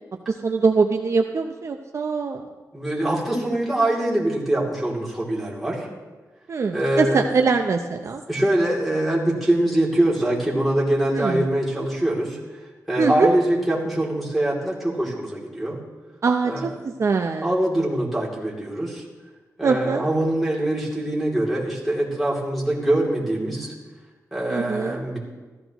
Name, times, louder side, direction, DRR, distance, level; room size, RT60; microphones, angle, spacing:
voice 1, 0.3-2.4 6.5-8.2 11.1-11.4 13.0-13.3 16.2-17.5 19.6-20.1 24.5-25.0, right 4 dB, 45° right, 4 dB, 0.6 m, -22 dB
voice 2, 2.7-5.9 6.7-7.2 8.3-12.4 12.9-15.8 16.5-16.7 17.4-19.0 19.6-23.7 24.3-25.2, right 1 dB, ahead, -4 dB, 2.8 m, -23 dB
15.5 x 13.5 x 3.0 m, 1.3 s
wide cardioid pair, 140°, 6 cm